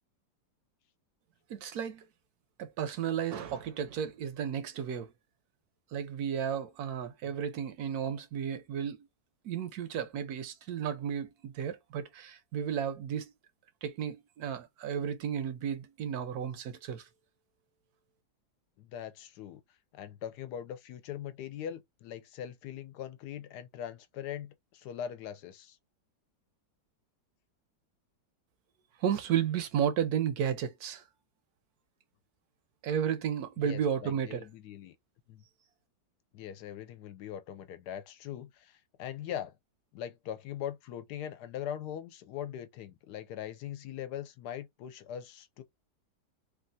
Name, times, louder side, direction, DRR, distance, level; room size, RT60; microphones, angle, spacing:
voice 1, 1.5-2.0 2.6-5.1 5.9-9.1 9.4-13.3 13.8-17.1 29.0-31.0 32.8-34.5, right 8 dB, 70° right, 1.0 m, -33 dB
voice 2, 18.8-19.6 19.9-25.8 33.6-35.0 35.3-35.4 36.3-39.5 39.9-45.6, left 10 dB, 75° left, 1.1 m, -41 dB
3.2 x 2.3 x 2.6 m
omnidirectional pair, 1.8 m